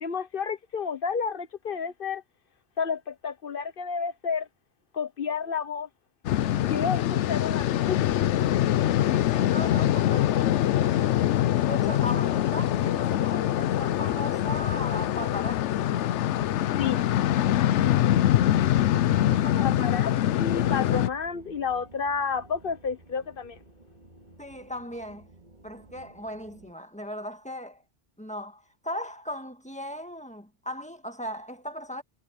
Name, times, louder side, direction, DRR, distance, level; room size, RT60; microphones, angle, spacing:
voice 1, 0.0-2.2 2.8-4.5 4.9-5.9 6.6-8.0 16.8-17.0 17.8-18.7 19.6-20.1 20.4-23.6, left 6 dB, 55° left, 1.0 m, -31 dB
sound 1, 6.2-21.1, left 12 dB, 80° left, 0.9 m, -24 dB
voice 2, 9.0-11.3 11.7-15.9 19.3-19.9 24.4-25.3 25.6-27.8 28.2-32.0, equal, 5° left, 1.5 m, -38 dB
sound 2, 17.6-26.7, right 2 dB, 40° right, 2.2 m, -52 dB
omnidirectional pair, 1.2 m